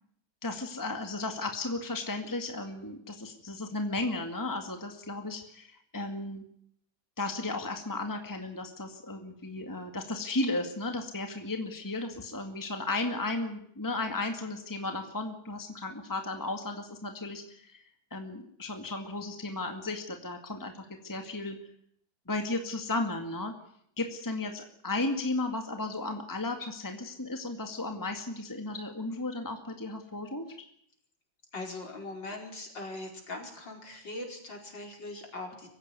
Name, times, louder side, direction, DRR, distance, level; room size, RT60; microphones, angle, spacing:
voice 1, 0.4-6.4 7.2-21.6 22.3-23.5 24.0-30.5, left 2 dB, 10° left, 5 dB, 2.1 m, -34 dB
voice 2, 31.5-35.7, left 2 dB, 70° left, 2 dB, 5.6 m, -41 dB
24.5 x 15.5 x 9.6 m, 0.69 s
omnidirectional pair, 2.1 m